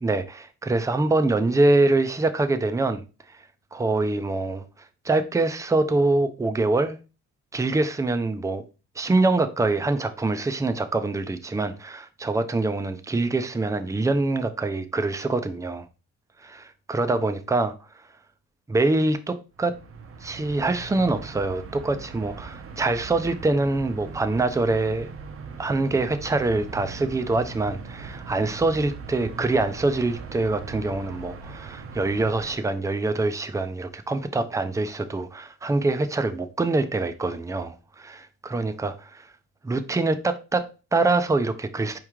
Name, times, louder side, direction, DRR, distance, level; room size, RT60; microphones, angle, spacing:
voice 1, 0.0-3.0 3.7-4.6 5.0-7.0 7.5-8.6 9.0-15.9 16.4-17.7 18.7-19.8 20.2-25.1 25.6-39.3 39.6-42.0, right 2 dB, 10° right, 0.5 m, -24 dB
sound 1, 19.6-32.6, right 4 dB, 50° right, 0.7 m, -40 dB
4.6 x 3.1 x 3.5 m
cardioid pair, 90°, 30 cm